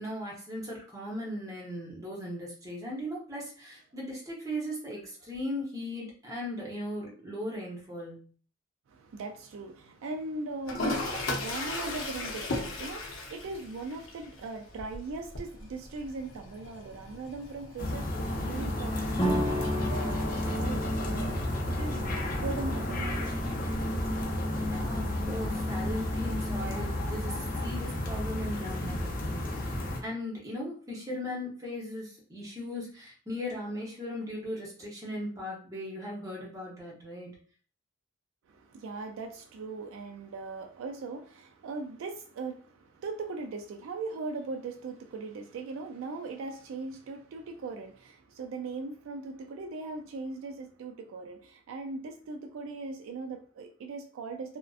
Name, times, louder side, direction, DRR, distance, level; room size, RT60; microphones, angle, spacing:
voice 1, 0.0-8.3 24.7-29.7 30.0-37.3, left 1 dB, 15° right, 0.8 m, -38 dB
voice 2, 8.9-21.4 21.7-23.3 38.5-54.6, right 3 dB, 75° right, 0.3 m, -39 dB
Toilet flush, 10.7-18.6, left 2 dB, 85° left, 0.6 m, -37 dB
sound 1, 17.8-30.0, left 1 dB, 45° left, 0.5 m, -32 dB
sound 2, 19.2-26.5, equal, 25° left, 0.9 m, -36 dB
2.5 x 2.1 x 2.4 m
head